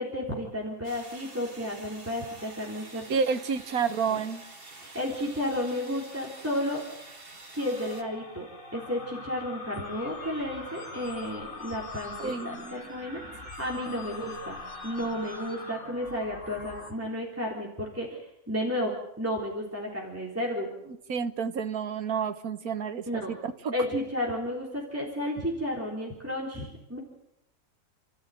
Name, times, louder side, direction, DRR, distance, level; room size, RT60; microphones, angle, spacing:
voice 1, 0.0-3.2 4.1-4.2 4.7-6.8 7.5-8.5 8.7-20.7 23.1-23.3 23.7-27.0, left 1 dB, 10° right, -2 dB, 3.6 m, -32 dB
sound 1, 0.8-8.0, right 2 dB, 40° right, 2.7 m, -48 dB
voice 2, 3.1-4.4 12.2-12.8 21.1-23.7, right 6 dB, 75° right, 9 dB, 1.7 m, -30 dB
sound 2, 7.6-16.9, left 3 dB, 70° left, 3.5 m, -42 dB
29.0 x 14.0 x 9.2 m, 0.84 s
omnidirectional pair, 1.6 m